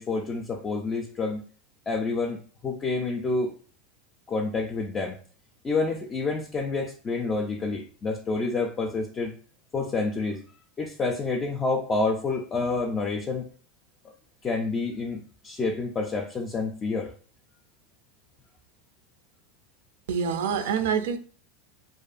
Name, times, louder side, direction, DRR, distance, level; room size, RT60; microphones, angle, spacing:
voice 1, 0.0-1.4 1.9-3.5 4.3-5.2 5.6-9.3 9.7-10.4 10.8-13.5 14.4-17.1, left 3 dB, 25° left, 0.3 m, -28 dB
voice 2, 20.1-21.2, right 7 dB, 80° right, 0.3 m, -26 dB
2.5 x 2.3 x 2.4 m
supercardioid pair, 120°, 0 cm